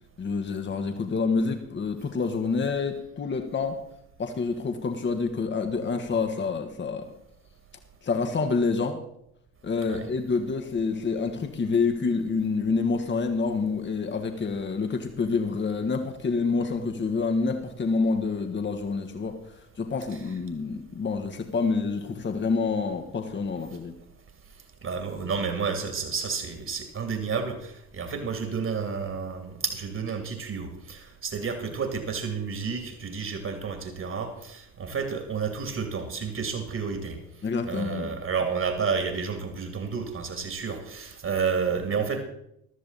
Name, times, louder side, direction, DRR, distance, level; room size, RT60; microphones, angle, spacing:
voice 1, 0.2-3.8 4.2-7.1 8.0-9.0 9.6-19.4 19.8-23.9 37.4-38.1, left 4 dB, 25° left, 5 dB, 1.7 m, -27 dB
voice 2, 24.8-37.2 37.7-42.2, right 5 dB, 35° right, 5 dB, 2.8 m, -30 dB
14.5 x 13.0 x 4.2 m, 0.77 s
figure-of-eight pair, 60°, 43 cm